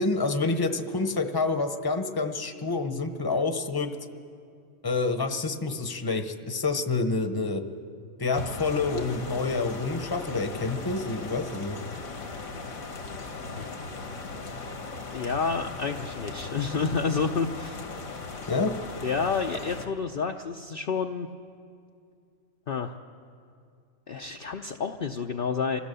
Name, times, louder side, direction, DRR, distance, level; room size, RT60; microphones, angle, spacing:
voice 1, 0.0-3.9 4.8-7.6 8.2-11.8 18.5-18.7, left 3 dB, 20° left, 7 dB, 0.9 m, -28 dB
sound 1, 8.3-19.9, left 3 dB, 80° left, 1.9 m, -38 dB
voice 2, 15.1-17.8 19.0-21.3 22.7-23.0 24.1-25.8, left 5 dB, 50° left, 3 dB, 0.8 m, -29 dB
25.5 x 16.0 x 6.9 m, 2.3 s
omnidirectional pair, 1.4 m